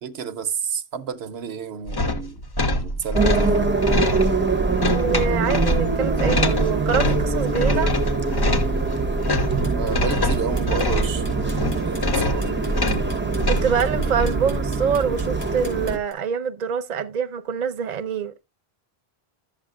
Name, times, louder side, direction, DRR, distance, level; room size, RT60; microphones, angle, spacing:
voice 1, 0.0-2.4 2.8-3.5 9.7-12.4, right 7 dB, 75° right, 1.0 m, -31 dB
sound 1, 1.9-14.3, left 1 dB, 30° left, 0.5 m, -25 dB
sound 2, 3.1-16.0, right 3 dB, 10° right, 0.7 m, -24 dB
voice 2, 4.9-7.9 13.5-18.4, right 6 dB, 50° right, 0.7 m, -25 dB
sound 3, 9.6-16.1, equal, 50° left, 3.6 m, -43 dB
12.0 x 7.4 x 2.3 m
omnidirectional pair, 1.1 m